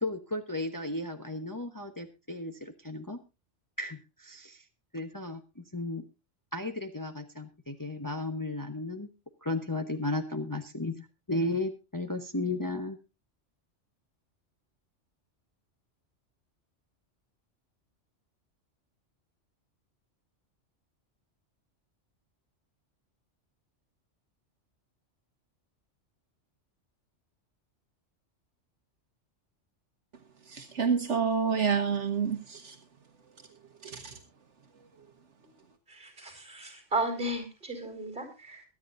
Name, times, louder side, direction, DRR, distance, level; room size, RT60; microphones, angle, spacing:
voice 1, 0.0-3.2 3.8-4.6 4.9-6.0 6.5-9.1 9.4-13.0, left 2 dB, 15° left, 5 dB, 1.0 m, -34 dB
voice 2, 30.5-32.8 33.8-34.1, right 6 dB, 75° right, 6 dB, 1.5 m, -28 dB
voice 3, 35.9-38.6, right 2 dB, 50° right, 5 dB, 5.0 m, -34 dB
23.0 x 9.8 x 2.6 m, 0.28 s
omnidirectional pair, 1.2 m